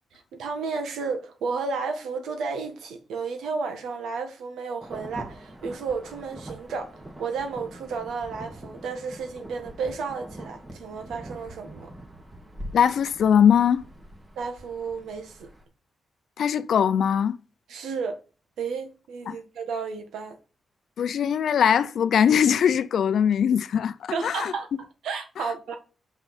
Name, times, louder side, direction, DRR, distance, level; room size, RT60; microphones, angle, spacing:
voice 1, 0.3-6.9 7.2-11.9 14.4-15.5 17.7-18.2 18.6-20.4 24.1-24.7 25.0-25.8, right 5 dB, 85° right, 1.5 m, -32 dB
Insect / Thunder / Rain, 4.8-15.7, right 1 dB, 25° right, 2.4 m, -43 dB
voice 2, 12.7-13.8 16.4-17.4 19.3-19.4 21.0-24.5 25.4-25.5, left 8 dB, 75° left, 0.5 m, -21 dB
5.9 x 5.5 x 4.2 m
cardioid pair, 70°, 0 cm